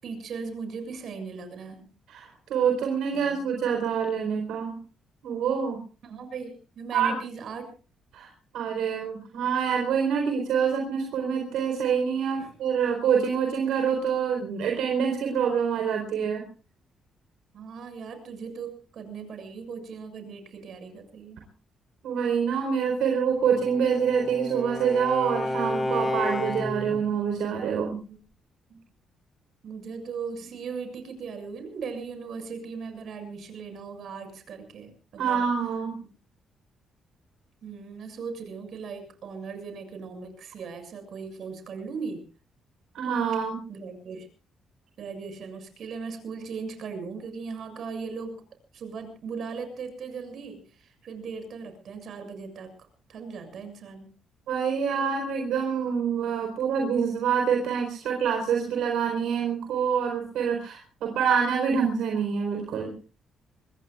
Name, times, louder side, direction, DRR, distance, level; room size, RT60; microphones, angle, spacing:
voice 1, 0.0-1.9 3.1-3.4 6.0-7.7 12.4-12.5 17.5-21.4 28.1-28.2 28.7-28.8 29.6-35.4 37.6-42.2 43.7-44.3 45.0-48.4 48.7-52.7 53.1-54.1, right 5 dB, 65° right, 8 dB, 6.9 m, -38 dB
voice 2, 2.1-4.8 5.2-5.8 6.9-7.1 8.1-16.4 22.0-28.0 35.2-35.9 42.9-43.6 54.5-62.9, right 7 dB, 80° right, 2 dB, 4.4 m, -26 dB
Bowed string instrument, 23.4-27.0, left 1 dB, 10° left, 4.4 m, -31 dB
26.0 x 22.0 x 2.4 m, 0.36 s
cardioid pair, 90°, 0 cm